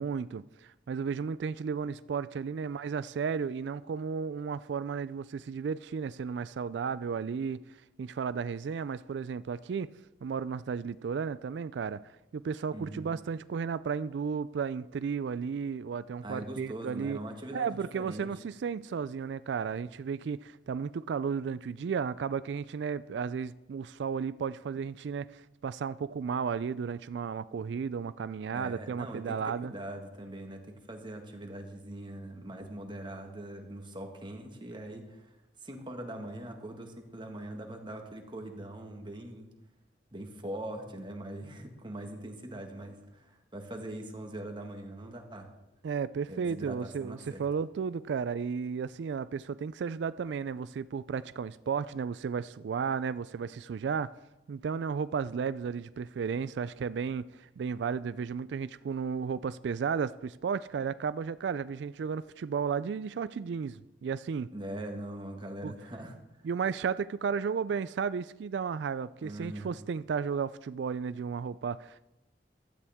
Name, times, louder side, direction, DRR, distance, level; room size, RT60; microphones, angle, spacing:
voice 1, 0.0-7.6 8.0-9.9 10.2-12.0 12.3-17.2 17.5-29.7 45.8-54.1 54.5-64.5 65.6-65.7 66.4-72.0, right 6 dB, 75° right, 0.3 m, -34 dB
voice 2, 12.7-13.1 16.2-18.3 28.5-35.3 35.6-39.5 40.1-45.5 46.3-47.4 64.5-66.2 69.2-69.7, right 1 dB, 25° right, 1.7 m, -42 dB
15.5 x 12.5 x 3.6 m
head